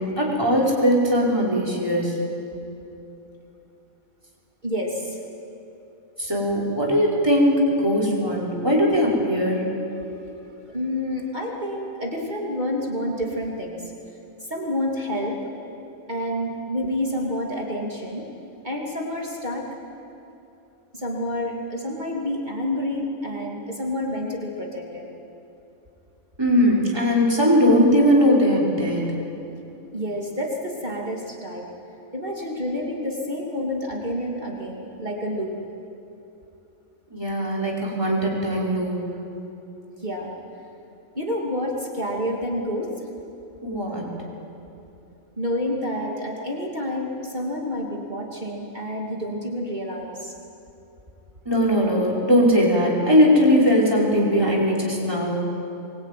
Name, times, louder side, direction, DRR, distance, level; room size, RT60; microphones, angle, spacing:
voice 1, 0.0-2.2 6.2-9.7 26.4-29.1 37.1-39.0 43.6-44.1 51.5-55.4, equal, 15° right, -4 dB, 5.4 m, -20 dB
voice 2, 4.6-5.2 10.1-10.3 10.6-13.9 14.5-15.4 16.1-18.3 18.6-19.7 20.9-25.0 29.9-31.7 32.1-35.6 40.0-40.3 41.1-42.9 45.4-50.3, left 1 dB, 30° right, -2 dB, 3.0 m, -29 dB
23.5 x 22.5 x 9.4 m, 2.8 s
omnidirectional pair, 1.5 m